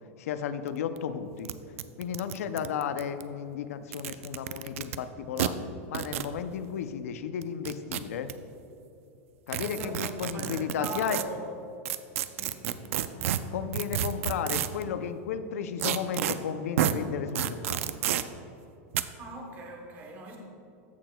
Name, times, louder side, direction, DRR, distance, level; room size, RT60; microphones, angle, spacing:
voice 1, 0.2-1.5 2.0-8.3 9.5-11.2 13.5-18.0, left 8 dB, 85° left, 10 dB, 0.5 m, -34 dB
sound 1, 0.7-0.8 1.0-1.1 1.4-1.5 1.8-3.2 3.8-5.0 5.4-5.5 5.9-6.3 7.4-8.3 9.5-11.2 11.8-14.8 15.8-16.3 16.8-16.9 17.3-18.2 18.9-19.0, right 12 dB, 70° right, 0.4 m, -30 dB
voice 2, 9.6-11.5 12.3-12.8 19.2-20.4, right 2 dB, 25° right, 1 dB, 1.0 m, -40 dB
14.5 x 6.1 x 2.2 m, 2.8 s
supercardioid pair, 170°, 8 cm